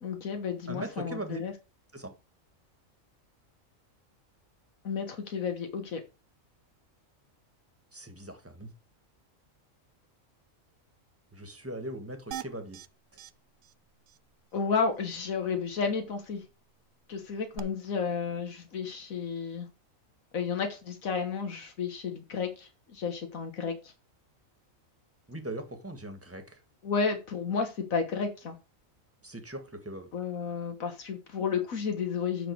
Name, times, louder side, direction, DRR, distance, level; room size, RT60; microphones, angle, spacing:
voice 1, 0.0-1.5 4.8-6.0 14.5-16.5 17.1-19.7 20.3-23.9 26.8-28.6 30.1-32.5, left 5 dB, 85° left, 1.8 m, -32 dB
voice 2, 0.7-1.4 1.9-2.1 7.9-8.7 11.3-12.8 13.1-13.2 25.3-26.6 29.2-30.1, right 1 dB, 10° right, 1.6 m, -40 dB
sound 1, 12.3-12.9 13.2-13.3 13.6-13.7 14.1-14.2 17.5-17.6, right 11 dB, 70° right, 0.9 m, -40 dB
9.1 x 6.2 x 4.6 m
omnidirectional pair, 1.4 m